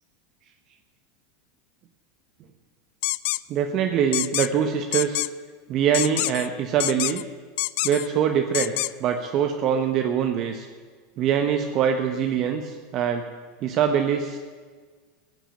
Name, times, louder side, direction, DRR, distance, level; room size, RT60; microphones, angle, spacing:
sound 1, 3.0-3.4 4.1-4.5 4.9-5.3 5.9-6.5 6.8-7.2 7.6-8.1 8.5-8.9, left 22 dB, 65° left, 0.3 m, -26 dB
voice 1, 3.5-5.2 5.7-7.2 7.8-8.7 9.0-10.7 11.2-13.3 13.6-14.4, right 8 dB, 50° right, 5 dB, 0.9 m, -23 dB
16.0 x 6.1 x 8.9 m, 1.5 s
hypercardioid pair, 105°, 0 cm